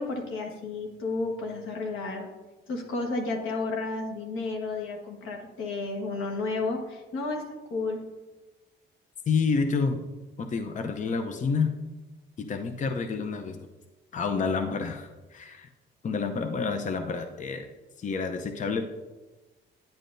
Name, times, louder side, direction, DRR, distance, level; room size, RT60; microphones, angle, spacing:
voice 1, 0.0-2.3 2.7-8.0, left 3 dB, 85° left, 2 dB, 1.4 m, -32 dB
voice 2, 9.3-10.0 10.4-11.8 12.4-13.7 14.1-15.7 16.0-17.7 18.0-18.9, left 5 dB, 40° left, 7 dB, 0.6 m, -29 dB
10.5 x 8.4 x 2.6 m, 1.2 s
cardioid pair, 90°, 20 cm